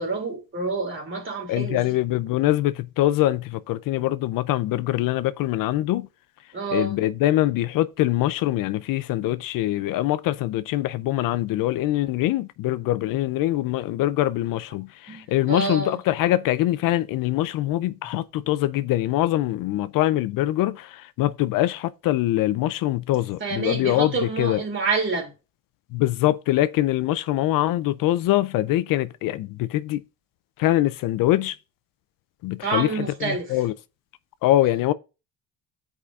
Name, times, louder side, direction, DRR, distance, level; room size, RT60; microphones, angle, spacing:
voice 1, 0.0-1.9 6.5-7.0 15.1-16.0 23.4-25.3 32.6-33.6, right 4 dB, 35° right, 2.7 m, -28 dB
voice 2, 1.5-6.1 6.7-24.1 24.4-24.6 25.9-30.0 30.6-31.6 32.4-32.9 33.3-33.7 34.4-34.9, left 15 dB, 65° left, 0.5 m, -23 dB
14.0 x 4.9 x 2.4 m
cardioid pair, 95°, 36 cm